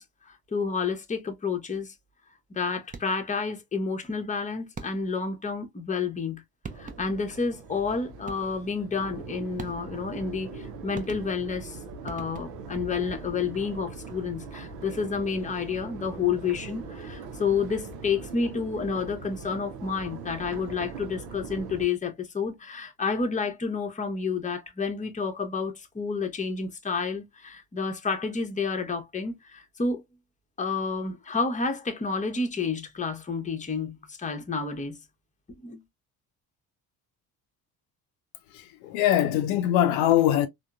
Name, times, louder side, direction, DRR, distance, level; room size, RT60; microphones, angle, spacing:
voice 1, 0.0-1.9 2.5-6.4 6.8-11.8 12.0-30.0 30.6-35.0 35.6-35.8, left 5 dB, 15° left, 0.8 m, -30 dB
sound 1, 2.8-3.3 4.7-5.3 6.3-6.4 6.6-7.3 8.3-8.7 9.6-10.1 10.9-11.6 12.1-12.7, right 5 dB, 20° right, 0.5 m, -42 dB
Crowd, 6.7-21.8, right 4 dB, 75° right, 0.7 m, -41 dB
voice 2, 38.5-40.5, left 12 dB, 65° left, 0.6 m, -22 dB
3.7 x 2.2 x 2.2 m
hypercardioid pair, 50°, 48 cm